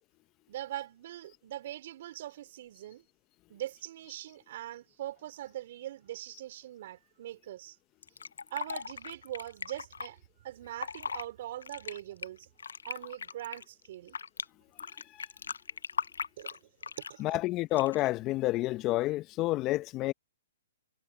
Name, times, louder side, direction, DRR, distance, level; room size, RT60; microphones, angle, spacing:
voice 1, 0.5-3.0 3.5-7.8 8.5-12.5 12.8-14.2 16.4-16.6 17.0-17.3, right 13 dB, 55° right, 4.6 m, -42 dB
Fill (with liquid), 8.0-10.1 10.7-11.2 11.6-14.4 14.8-17.2 17.7-18.1, left 6 dB, 85° left, 0.4 m, -39 dB
voice 2, 17.2-20.1, left 18 dB, 30° left, 0.8 m, -29 dB
hypercardioid pair, 140°, 0 cm